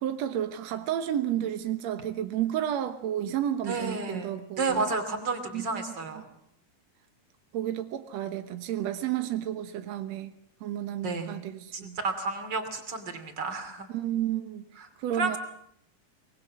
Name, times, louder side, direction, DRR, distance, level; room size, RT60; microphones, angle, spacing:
voice 1, 0.0-4.8 5.5-5.9 6.1-6.2 7.5-10.3 10.6-12.0 13.9-15.4, right 11 dB, 70° right, 1.7 m, -31 dB
voice 2, 3.7-6.2 11.0-11.3 11.7-13.9 15.2-15.4, right 3 dB, 30° right, 2.9 m, -31 dB
25.0 x 20.0 x 7.4 m
omnidirectional pair, 4.5 m